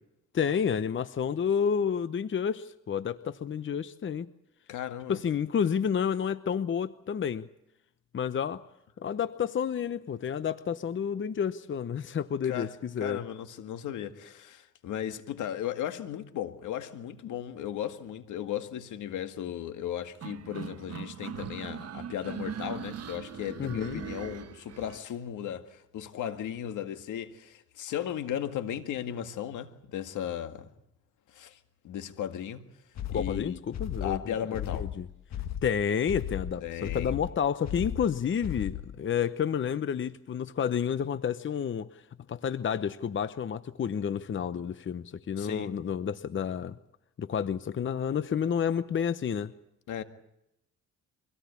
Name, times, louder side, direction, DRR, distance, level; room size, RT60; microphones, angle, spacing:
voice 1, 0.3-4.3 5.1-7.5 8.1-8.6 9.0-13.2 23.6-24.0 33.1-34.3 34.7-35.1 35.6-42.0 42.3-46.8 47.2-49.5, left 7 dB, 40° left, 0.9 m, -30 dB
voice 2, 4.7-5.2 12.4-30.7 31.3-31.6 31.8-32.6 33.1-33.6 34.0-34.9 36.6-37.2 45.4-45.8 49.9-50.0, left 10 dB, 80° left, 2.0 m, -36 dB
sound 1, 20.2-25.0, right 8 dB, 55° right, 1.4 m, -40 dB
sound 2, 33.0-39.0, left 10 dB, 60° left, 1.6 m, -36 dB
24.5 x 17.5 x 8.5 m
cardioid pair, 90°, 30 cm